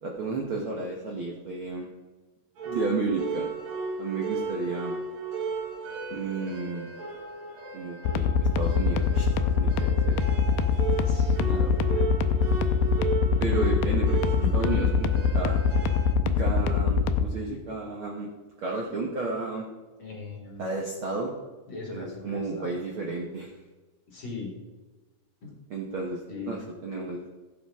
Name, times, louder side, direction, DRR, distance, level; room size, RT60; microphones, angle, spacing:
voice 1, 0.0-1.9 2.6-3.5 4.0-4.9 6.1-6.9 7.7-10.2 13.4-15.6 16.2-18.3 18.6-19.7 20.6-21.3 21.9-23.5 25.7-26.2 26.4-27.3, right 3 dB, 90° right, -1 dB, 1.1 m, -32 dB
sound 1, 2.6-16.1, right 4 dB, 70° right, 3.4 m, -35 dB
sound 2, 8.1-17.2, left 6 dB, 85° left, 2.4 m, -23 dB
voice 2, 11.0-12.1 14.4-14.9 20.0-20.7 21.7-22.7 24.1-24.6 25.4-25.5 26.3-26.6, left 4 dB, 40° left, -1 dB, 2.2 m, -39 dB
15.0 x 7.2 x 3.6 m, 1.2 s
omnidirectional pair, 4.2 m